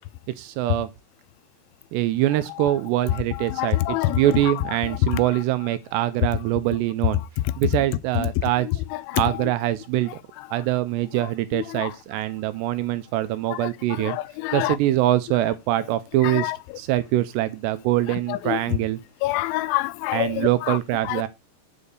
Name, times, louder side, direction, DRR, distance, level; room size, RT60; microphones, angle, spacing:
voice 1, 0.3-0.9 1.9-7.2 7.6-8.8 9.1-10.1 10.5-14.2 14.5-19.0 20.1-21.3, right 14 dB, 80° right, 2.6 m, -24 dB
voice 2, 3.6-4.2 5.1-5.2 8.2-8.3 9.1-9.2 11.7-11.9 13.5-13.7 14.1-14.8 16.2-16.6 18.3-18.6 19.2-20.8 21.1-21.3, left 17 dB, 90° left, 3.0 m, -26 dB
7.2 x 6.8 x 6.6 m
omnidirectional pair, 5.3 m